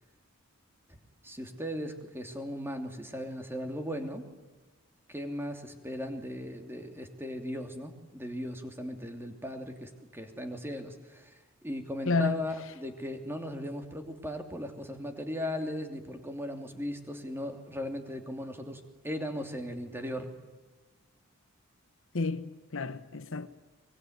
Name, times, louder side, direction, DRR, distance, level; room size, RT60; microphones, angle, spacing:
voice 1, 0.9-4.2 5.1-20.3, left 1 dB, 10° right, 3.0 m, -37 dB
voice 2, 12.1-12.4 22.1-23.5, left 3 dB, 65° left, 1.0 m, -30 dB
24.5 x 22.5 x 9.5 m
head